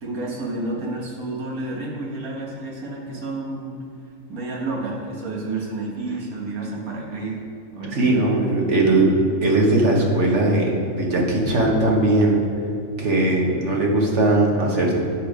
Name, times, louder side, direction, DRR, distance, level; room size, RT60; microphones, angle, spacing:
voice 1, 0.0-3.8 4.3-7.4 7.7-8.4 8.8-8.9, right 2 dB, 90° right, -2 dB, 2.0 m, -30 dB
voice 2, 7.9-9.1 9.4-12.4 13.0-14.9, right 2 dB, 55° right, -1 dB, 1.6 m, -19 dB
8.8 x 6.8 x 5.0 m, 2.6 s
omnidirectional pair, 1.4 m